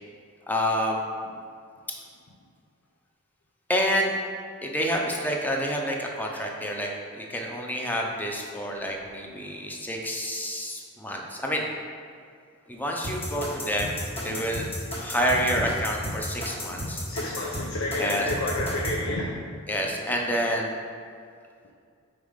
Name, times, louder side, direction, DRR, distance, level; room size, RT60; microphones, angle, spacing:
voice 1, 0.5-1.0 3.7-4.1 4.6-11.7 12.7-14.0 14.2-14.7 15.0-17.0 18.0-18.3 19.7-20.8, equal, 10° left, 0 dB, 0.7 m, -28 dB
sound 1, 13.0-19.0, equal, 30° left, 1.5 m, -33 dB
voice 2, 17.1-19.6, left 1 dB, 85° left, -2 dB, 0.7 m, -30 dB
5.4 x 4.1 x 5.1 m, 2.3 s
head